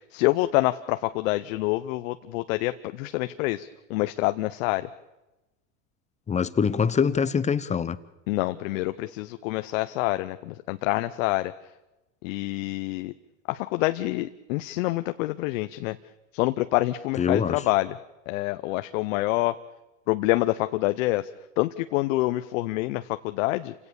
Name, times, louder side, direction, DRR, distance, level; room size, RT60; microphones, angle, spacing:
voice 1, 0.1-4.9 8.3-11.5 12.2-13.1 13.5-16.0 16.3-17.9 18.3-19.6 20.1-21.3 21.6-23.7, left 18 dB, 65° left, 10 dB, 0.9 m, -26 dB
voice 2, 6.3-8.0 17.2-17.6, left 6 dB, 15° left, 15 dB, 0.9 m, -24 dB
28.5 x 17.0 x 7.0 m, 1.0 s
supercardioid pair, 120°, 42 cm